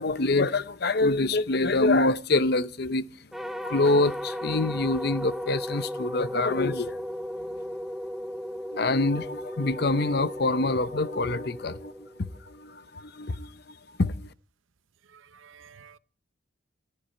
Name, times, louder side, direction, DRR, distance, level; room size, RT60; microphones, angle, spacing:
voice 1, 0.0-3.3 3.6-7.0 8.7-14.3, left 2 dB, 50° left, 0.7 m, -26 dB
sound 1, 3.3-12.6, equal, ahead, 0.9 m, -36 dB
voice 2, 15.1-16.0, right 7 dB, 75° right, 0.7 m, -52 dB
15.5 x 14.5 x 4.4 m
head